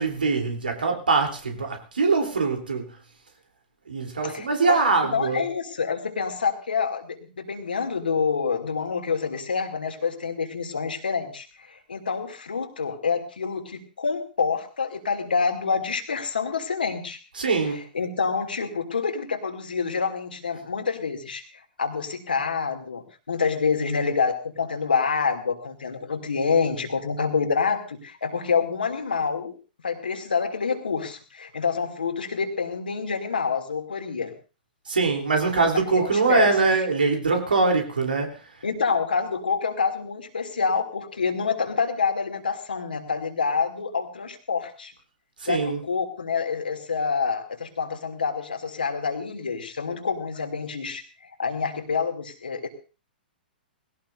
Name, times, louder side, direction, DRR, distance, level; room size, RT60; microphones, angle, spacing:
voice 1, 0.0-2.9 3.9-5.4 17.4-17.8 34.9-38.4 45.4-45.8, right 4 dB, 70° right, 3.4 m, -23 dB
voice 2, 4.2-17.2 17.7-21.4 21.8-29.6 29.8-34.3 35.7-36.5 38.6-44.9 45.5-51.0 51.4-52.7, left 5 dB, 70° left, 2.7 m, -27 dB
21.0 x 17.0 x 2.7 m
figure-of-eight pair, 105°, 5 cm